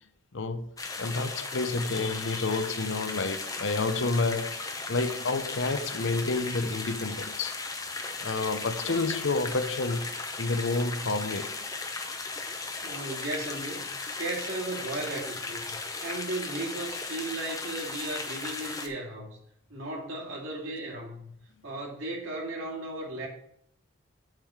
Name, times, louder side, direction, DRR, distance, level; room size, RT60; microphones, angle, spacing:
voice 1, 0.3-0.7 1.0-7.5 8.2-11.6, left 3 dB, 65° left, 0.7 m, -29 dB
sound 1, 0.8-18.9, left 3 dB, 15° left, 0.7 m, -36 dB
voice 2, 12.8-13.9 14.2-19.4 19.7-21.3 21.6-23.3, right 2 dB, 75° right, 2.5 m, -36 dB
7.5 x 3.9 x 6.4 m
head